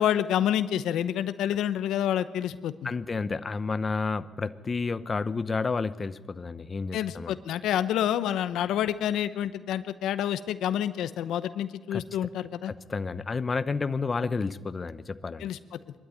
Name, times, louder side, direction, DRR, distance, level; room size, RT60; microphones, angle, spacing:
voice 1, 0.0-2.9 6.9-12.7 15.4-15.6, left 10 dB, 85° left, 13 dB, 0.8 m, -28 dB
voice 2, 2.8-7.3 11.9-12.0 12.7-15.5, left 4 dB, 30° left, 13 dB, 0.7 m, -30 dB
22.5 x 13.0 x 9.7 m, 1.4 s
cardioid pair, 90°, 0 cm